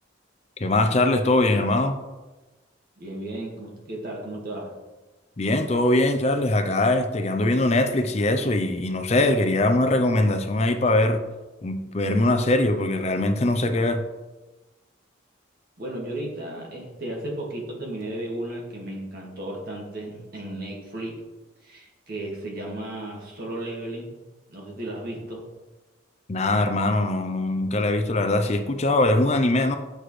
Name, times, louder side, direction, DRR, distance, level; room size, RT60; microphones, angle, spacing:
voice 1, 0.6-2.0 5.4-11.2 11.6-14.0 26.3-29.8, left 2 dB, 35° left, 7 dB, 0.5 m, -22 dB
voice 2, 3.0-4.8 15.8-21.2 21.6-24.1 24.5-25.5, right 1 dB, 50° right, -2 dB, 1.8 m, -34 dB
7.9 x 6.5 x 3.2 m, 1.1 s
head